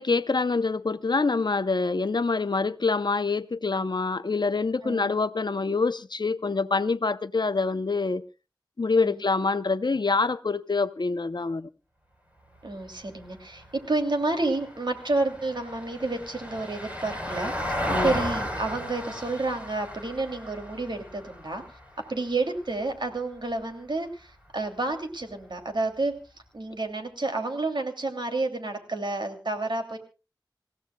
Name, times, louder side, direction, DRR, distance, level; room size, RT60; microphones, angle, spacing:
voice 1, 0.0-8.2 8.8-11.7 17.9-18.1, left 4 dB, 70° left, 0.7 m, -26 dB
voice 2, 4.8-5.1 9.0-9.2 12.6-21.6 22.1-26.2 26.5-30.0, right 2 dB, 75° right, 2.8 m, -30 dB
Vehicle, 12.5-23.0 25.3-25.4, equal, 20° right, 4.3 m, -35 dB
27.5 x 16.0 x 2.3 m
wide cardioid pair, 55°, 8 cm